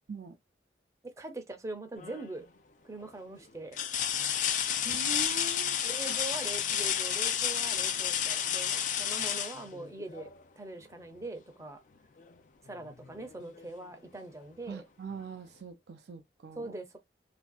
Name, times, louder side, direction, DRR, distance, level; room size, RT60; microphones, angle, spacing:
voice 1, 1.0-2.5 2.8-3.8 4.2-4.5 5.8-10.3 10.6-11.8 12.6-14.8 16.6-17.0, right 2 dB, 15° right, 0.6 m, -42 dB
sound 1, 2.0-2.4 3.0-3.1 3.7-10.4 12.2-12.3 12.8-13.8 15.1-15.2, left 9 dB, 45° left, 0.4 m, -31 dB
voice 2, 4.8-5.8 14.7-16.8, right 4 dB, 75° right, 0.4 m, -42 dB
3.3 x 2.5 x 2.3 m
head